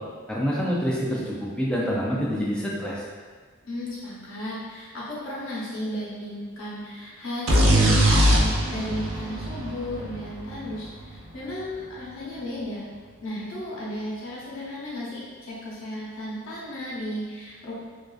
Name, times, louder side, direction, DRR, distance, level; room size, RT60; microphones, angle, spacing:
voice 1, 0.3-3.0, equal, 5° left, -5 dB, 0.3 m, -26 dB
voice 2, 3.6-12.9 13.2-17.7, left 1 dB, 70° left, -8 dB, 0.7 m, -34 dB
sound 1, 7.5-11.2, right 1 dB, 85° right, 0.4 m, -21 dB
2.4 x 2.3 x 2.3 m, 1.5 s
head